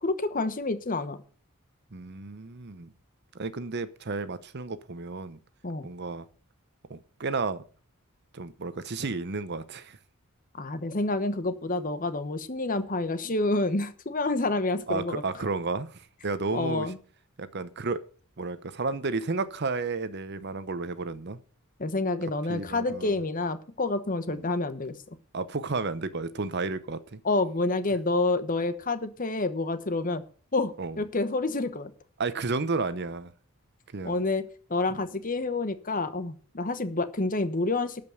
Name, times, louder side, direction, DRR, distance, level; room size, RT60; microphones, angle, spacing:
voice 1, 0.0-1.2 5.6-5.9 10.6-15.2 16.5-17.0 21.8-24.9 27.2-30.2 30.5-31.9 34.0-38.0, left 2 dB, 40° left, 1.1 m, -28 dB
voice 2, 1.9-2.9 3.3-5.4 5.8-6.3 6.9-7.6 8.3-10.0 14.9-16.9 17.4-18.0 18.4-21.4 22.5-23.2 24.3-24.5 25.3-27.2 30.8-31.0 32.2-33.3 33.9-34.2 34.9-35.0, right 3 dB, 50° right, 0.8 m, -32 dB
12.5 x 5.3 x 7.9 m
head